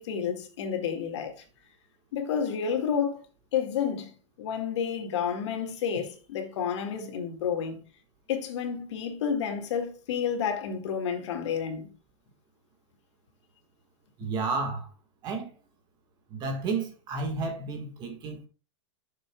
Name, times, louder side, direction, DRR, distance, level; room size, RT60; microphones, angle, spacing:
voice 1, 0.0-1.4 2.1-3.2 3.5-4.1 4.4-7.8 8.3-11.9, left 7 dB, 65° left, 2.1 m, -30 dB
voice 2, 14.2-14.9 15.2-15.5 16.3-18.5, right 3 dB, 25° right, 1.6 m, -31 dB
13.0 x 7.0 x 2.3 m
supercardioid pair, 155°, 16 cm